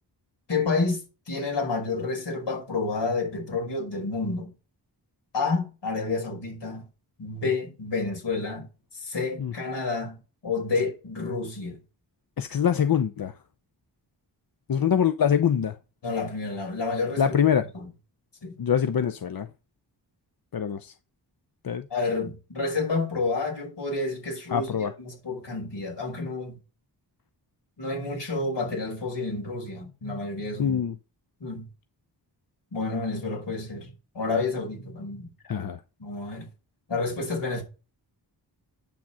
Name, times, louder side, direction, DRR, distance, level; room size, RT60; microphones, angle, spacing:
voice 1, 0.5-4.5 5.3-6.9 7.2-8.7 8.9-10.2 10.4-11.8 16.0-17.9 18.4-18.5 21.9-26.6 27.8-30.8 31.4-31.7 32.7-35.7 36.0-36.5 36.9-37.6, left 3 dB, 75° left, 5.3 m, -30 dB
voice 2, 12.4-13.3 14.7-15.7 17.2-17.7 18.6-19.5 20.5-20.9 21.6-21.9 24.5-24.9 30.6-30.9 35.5-35.8, left 8 dB, 55° left, 0.7 m, -24 dB
8.7 x 6.2 x 5.6 m
wide cardioid pair, 100°, 43 cm